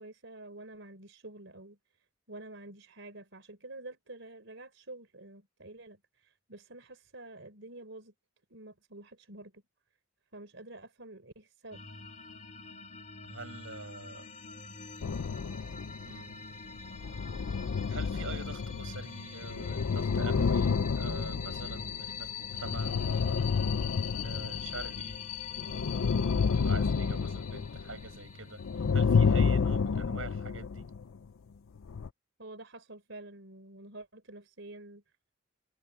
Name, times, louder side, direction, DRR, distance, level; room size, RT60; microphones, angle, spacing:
voice 1, 0.0-1.8 2.3-8.1 8.5-9.6 10.3-11.8 32.4-35.0, right 2 dB, 70° right, 4.3 m, -48 dB
sound 1, 11.7-28.9, left 7 dB, 40° left, 2.0 m, -43 dB
voice 2, 13.2-14.3 16.1-16.3 17.9-23.5 24.2-25.2 25.6-26.0 26.5-28.6 28.9-30.9, right 3 dB, 90° right, 7.7 m, -45 dB
sound 2, 15.0-16.3 16.8-25.2 25.5-28.3 28.6-31.0 31.8-32.1, left 5 dB, 85° left, 0.5 m, -30 dB
head